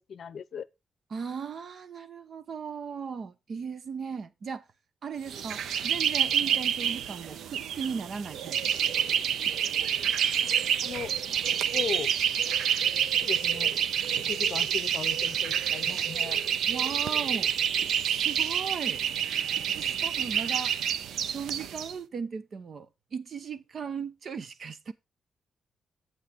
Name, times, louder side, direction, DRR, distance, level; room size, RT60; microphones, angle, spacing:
voice 1, 0.1-0.7 10.4-10.5 10.8-11.1 11.5-12.1 13.2-13.7 14.2-16.4, left 7 dB, 55° left, 0.7 m, -37 dB
voice 2, 1.1-4.6 5.0-8.7 16.7-17.5 18.2-19.1 19.7-20.7 21.3-24.9, right 6 dB, 50° right, 0.9 m, -37 dB
sound 1, 5.3-21.9, right 8 dB, 85° right, 0.6 m, -28 dB
8.0 x 8.0 x 3.6 m
cardioid pair, 125°, 0 cm